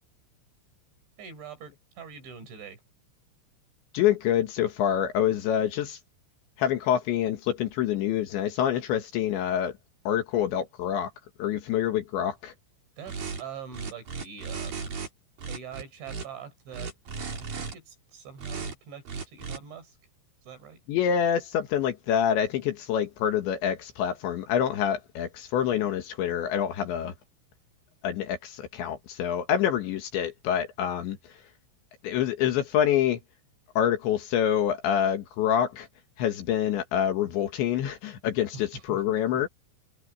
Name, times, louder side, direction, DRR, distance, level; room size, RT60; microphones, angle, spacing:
voice 1, 1.2-2.8 13.0-14.9 15.5-20.0 20.4-20.8 38.5-39.4, right 6 dB, 60° right, 7.6 m, -44 dB
voice 2, 3.9-6.0 6.6-9.7 10.1-11.1 11.4-12.5 20.9-27.1 28.0-31.2 32.0-33.2 33.8-35.9 36.2-39.5, left 9 dB, 65° left, 3.7 m, -26 dB
sound 1, 13.1-13.4 13.7-15.1 15.4-16.3 16.7-17.7 18.4-18.7 19.1-19.6, right 5 dB, 45° right, 5.7 m, -35 dB
omnidirectional pair, 5.9 m